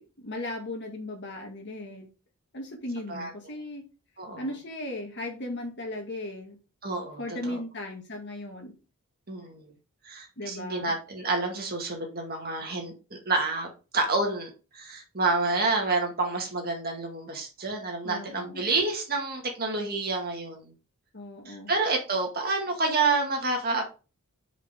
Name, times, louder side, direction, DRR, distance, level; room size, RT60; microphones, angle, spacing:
voice 1, 0.0-2.1 2.5-3.9 4.4-6.6 7.2-8.8 10.4-11.0 18.0-18.7 21.1-21.7, left 1 dB, 50° left, 1.9 m, -37 dB
voice 2, 6.8-7.6 9.3-9.7 10.0-20.7 21.5-23.8, right 3 dB, 45° right, 1.9 m, -29 dB
5.2 x 5.0 x 5.1 m
head